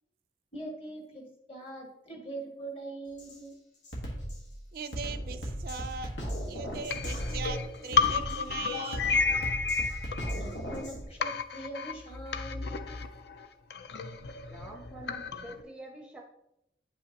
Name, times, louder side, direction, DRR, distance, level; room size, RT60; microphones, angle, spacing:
voice 1, 0.5-1.2 1.5-3.5 10.3-12.7, right 2 dB, 35° left, 0 dB, 1.8 m, -42 dB
Drum kit, 3.2-3.4 3.8-11.0, equal, 90° left, 1.5 m, -37 dB
voice 2, 4.7-6.1 6.5-9.2 9.6-9.8, right 6 dB, 55° right, 11 dB, 0.4 m, -40 dB
sound 1, 6.9-10.9 11.2-15.6, left 5 dB, 70° left, 0.5 m, -32 dB
voice 3, 14.5-16.2, right 1 dB, 5° right, 1 dB, 0.6 m, -46 dB
9.7 x 5.5 x 2.9 m, 0.84 s
head